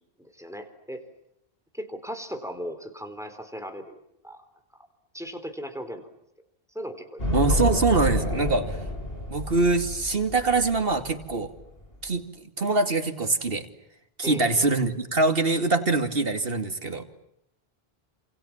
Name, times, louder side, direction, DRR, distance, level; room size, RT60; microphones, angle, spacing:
voice 1, 0.2-1.0 1.7-4.0 4.2-4.4 5.1-6.1 6.7-7.2 14.2-14.7, equal, 5° right, 8 dB, 3.8 m, -37 dB
sound 1, 7.2-12.1, left 1 dB, 70° left, 5.7 m, -29 dB
voice 2, 7.3-8.8 9.3-11.5 12.0-13.6 14.2-17.0, right 3 dB, 65° right, 7 dB, 2.7 m, -24 dB
29.5 x 28.0 x 7.3 m, 0.79 s
omnidirectional pair, 1.0 m